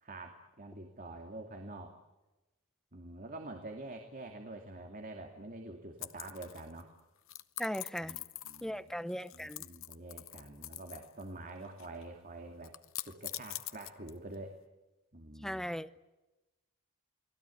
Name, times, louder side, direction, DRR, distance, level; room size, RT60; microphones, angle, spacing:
voice 1, 0.0-1.9 2.9-6.9 8.0-9.0 9.3-12.7 13.0-14.5 15.1-15.7, right 2 dB, 40° right, 3 dB, 2.6 m, -46 dB
sound 1, 6.0-6.8 7.3-8.8 9.1-11.2 11.5-12.0 12.6-14.3, left 15 dB, 60° left, 1.0 m, -44 dB
voice 2, 7.6-8.2 8.6-9.6 15.4-16.0, equal, ahead, 12 dB, 0.8 m, -38 dB
29.5 x 20.5 x 8.6 m, 1.1 s
head